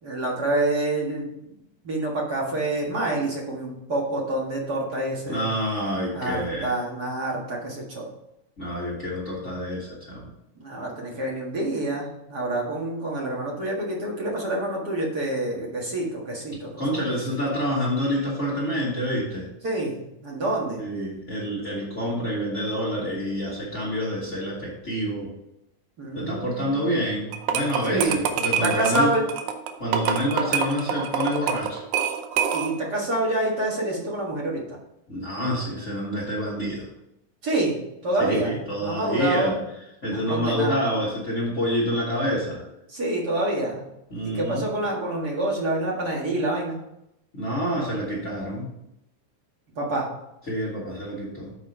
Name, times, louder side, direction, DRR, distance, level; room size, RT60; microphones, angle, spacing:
voice 1, 0.0-1.3 1.8-5.5 6.1-8.1 10.6-17.0 19.6-19.9 20.2-20.8 26.0-26.9 27.8-28.2 28.6-29.2 32.5-34.8 37.4-37.8 38.0-38.5 38.8-39.6 40.1-40.8 42.9-43.9 44.2-46.8 49.8-50.1, right 2 dB, 40° right, -3 dB, 1.8 m, -27 dB
voice 2, 5.3-6.7 8.6-10.3 16.8-19.5 20.8-25.3 26.1-29.1 29.8-31.8 35.1-36.9 38.2-39.6 40.0-42.7 44.1-44.7 47.3-48.7 50.5-51.5, equal, 30° left, -6 dB, 1.4 m, -27 dB
sound 1, 27.3-32.9, right 8 dB, 80° right, 2.1 m, -26 dB
7.4 x 4.4 x 5.3 m, 0.85 s
omnidirectional pair, 3.6 m